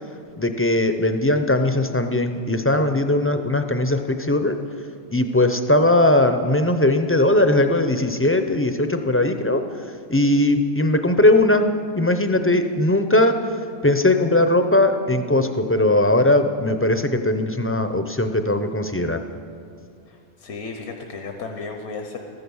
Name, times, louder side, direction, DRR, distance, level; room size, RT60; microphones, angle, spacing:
voice 1, 0.4-4.6 5.1-9.8 10.1-11.7 11.9-13.4 13.8-19.2, left 1 dB, 20° left, 7 dB, 0.4 m, -19 dB
voice 2, 20.1-22.2, left 4 dB, 80° left, 4 dB, 1.3 m, -34 dB
14.0 x 10.5 x 7.1 m, 2.3 s
omnidirectional pair, 1.1 m